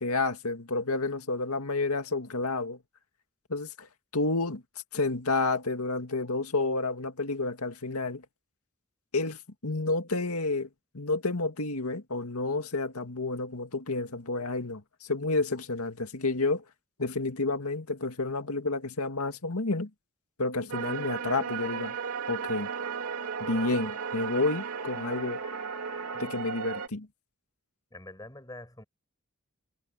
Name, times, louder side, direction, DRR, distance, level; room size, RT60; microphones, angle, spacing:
voice 1, 0.0-2.8 3.5-4.6 4.9-8.2 9.1-10.7 10.9-16.6 17.0-19.9 20.4-22.0 22.3-22.7 23.4-25.4 26.1-27.1, left 3 dB, 90° left, 2.1 m, -30 dB
sound 1, 20.7-26.9, right 6 dB, 85° right, 2.8 m, -35 dB
voice 2, 27.9-28.8, left 2 dB, 15° left, 4.9 m, -45 dB
head